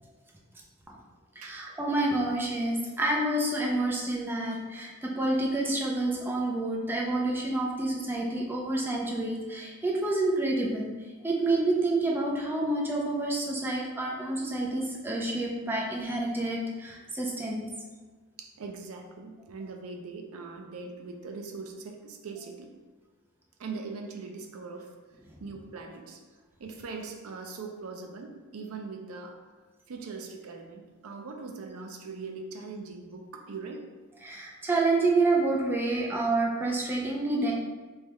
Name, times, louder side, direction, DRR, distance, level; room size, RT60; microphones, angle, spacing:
voice 1, 1.4-10.9 11.2-17.7 34.2-37.5, right 2 dB, 10° right, -3 dB, 0.4 m, -28 dB
voice 2, 18.4-22.7 23.6-24.9 25.4-26.2 26.6-29.4 29.9-33.8, right 4 dB, 70° right, 3 dB, 0.4 m, -41 dB
3.4 x 2.3 x 4.1 m, 1.3 s
head